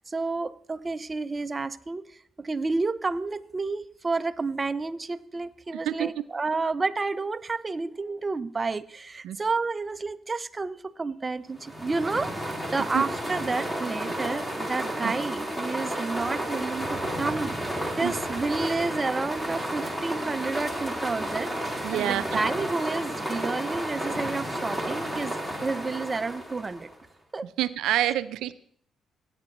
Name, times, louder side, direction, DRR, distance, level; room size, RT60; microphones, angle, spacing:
voice 1, 0.1-26.9 27.3-27.5 28.1-28.2, right 3 dB, 25° right, 12 dB, 0.4 m, -30 dB
voice 2, 5.7-6.1 9.2-9.4 12.9-13.0 15.0-15.1 18.0-18.1 21.8-22.4 27.6-28.5, right 13 dB, 90° right, 14 dB, 0.4 m, -27 dB
sound 1, 11.6-27.0, right 1 dB, 10° left, 2.2 m, -32 dB
16.0 x 8.7 x 3.0 m, 0.62 s
cardioid pair, 90°, 0 cm